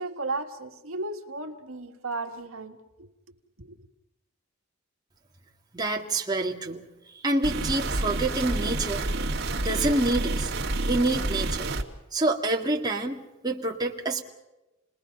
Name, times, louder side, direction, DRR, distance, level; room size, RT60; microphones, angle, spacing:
voice 1, 0.0-3.1 3.6-3.7, right 2 dB, 80° right, 1.8 m, -35 dB
voice 2, 5.7-6.9 7.2-9.0 9.6-10.5 10.9-11.7 12.1-14.2, right 2 dB, 20° right, 2.0 m, -27 dB
sound 1, 7.4-11.8, right 2 dB, 50° right, 2.5 m, -29 dB
29.5 x 20.5 x 5.4 m
head